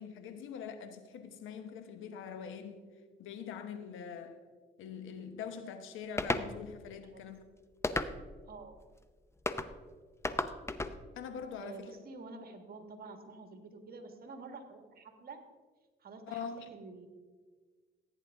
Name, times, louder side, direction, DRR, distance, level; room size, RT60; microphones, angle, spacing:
voice 1, 0.0-2.8 3.2-4.4 4.8-7.4 11.1-11.9 16.3-16.7, left 7 dB, 85° left, 1.1 m, -43 dB
sound 1, 6.2-6.5 7.8-8.4 9.5-9.7 10.2-11.0, left 2 dB, 15° left, 0.6 m, -33 dB
voice 2, 8.5-8.8 11.5-15.4 16.0-17.1, right 3 dB, 50° right, 1.7 m, -48 dB
16.0 x 9.2 x 3.6 m
cardioid pair, 90°, 20 cm